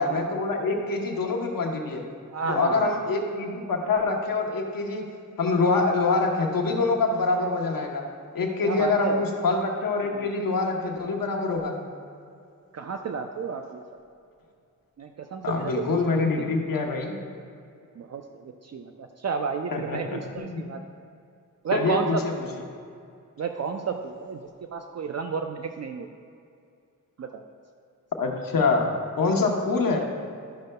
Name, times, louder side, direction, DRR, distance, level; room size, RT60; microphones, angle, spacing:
voice 1, 0.0-2.0 2.5-5.0 5.4-8.0 8.3-11.8 15.4-17.2 19.7-20.6 21.7-22.3 28.2-30.1, left 3 dB, 90° left, 2 dB, 0.9 m, -25 dB
voice 2, 2.3-3.0 8.6-9.2 10.1-10.2 12.7-13.8 15.0-16.5 18.0-20.8 21.6-22.2 23.4-24.4 24.7-26.1 27.2-27.4 29.8-29.9, right 5 dB, 50° right, 5 dB, 0.5 m, -31 dB
11.5 x 6.3 x 2.2 m, 2.4 s
cardioid pair, 55°, 33 cm